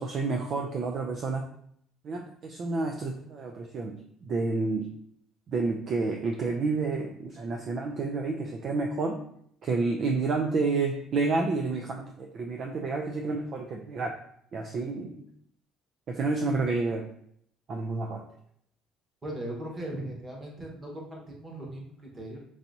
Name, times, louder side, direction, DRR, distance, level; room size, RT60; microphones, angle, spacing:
voice 1, 0.0-1.5 2.0-4.9 5.5-9.2 9.6-14.1 14.5-15.3 16.1-17.1 17.7-18.2, right 3 dB, 40° right, 2 dB, 0.4 m, -30 dB
voice 2, 19.2-22.4, right 1 dB, 20° right, -1 dB, 1.0 m, -38 dB
4.6 x 2.8 x 2.6 m, 0.67 s
cardioid pair, 155°, 0 cm